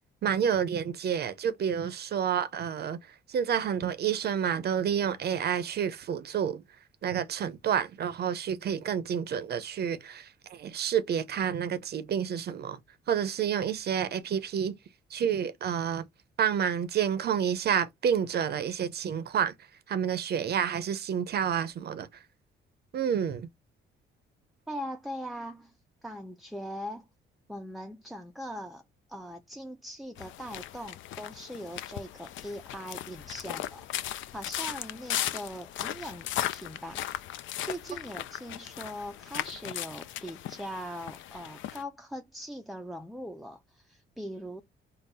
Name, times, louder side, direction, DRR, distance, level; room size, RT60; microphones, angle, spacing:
voice 1, 0.2-3.0 3.3-6.6 7.0-12.8 13.1-14.7 15.1-16.0 16.4-19.5 19.9-22.1 22.9-23.5, right 8 dB, 55° right, 0.6 m, -29 dB
voice 2, 24.7-25.8 26.0-27.1 27.5-28.8 29.1-37.1 37.6-44.6, equal, ahead, 0.4 m, -41 dB
sound 1, 30.2-41.8, left 13 dB, 75° left, 0.4 m, -37 dB
3.7 x 2.0 x 4.0 m
cardioid pair, 90°, 20 cm